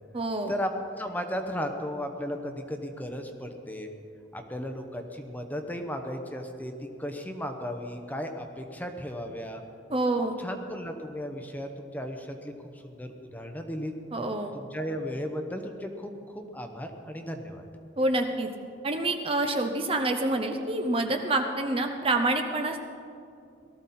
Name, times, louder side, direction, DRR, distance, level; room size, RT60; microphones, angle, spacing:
voice 1, 0.1-0.5 9.9-10.4 14.1-14.5 18.0-18.5 18.8-22.8, right 2 dB, 30° right, 5 dB, 0.8 m, -27 dB
voice 2, 1.0-3.9 4.3-6.7 7.0-9.6 10.4-12.5 12.9-13.9 14.5-17.6, equal, 10° left, 4 dB, 0.9 m, -35 dB
18.5 x 13.5 x 4.3 m, 2.5 s
head